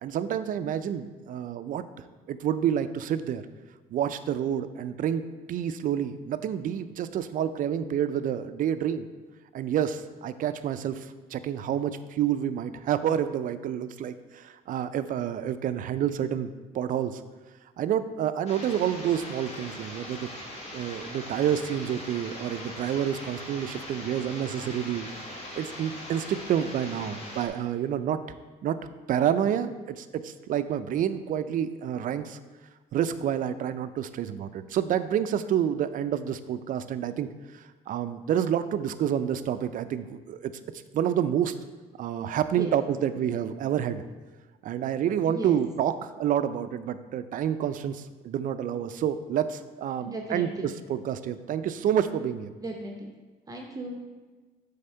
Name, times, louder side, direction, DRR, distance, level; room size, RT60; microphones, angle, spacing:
voice 1, 0.0-1.8 2.3-3.4 3.9-5.2 5.5-9.1 9.5-16.5 16.7-17.2 17.8-20.3 20.7-25.1 25.6-28.2 28.6-28.8 29.1-32.4 32.9-37.3 37.5-40.5 40.9-41.5 42.0-44.0 44.6-50.5 50.9-52.5, right 9 dB, 55° right, 12 dB, 0.4 m, -28 dB
sound 1, 18.5-27.5, left 1 dB, 40° left, 1.8 m, -41 dB
voice 2, 45.2-45.6 50.0-50.8 52.6-53.1 53.5-54.0, right 1 dB, 20° right, 1 dB, 0.7 m, -36 dB
7.6 x 3.5 x 5.5 m, 1.3 s
cardioid pair, 110°, 17 cm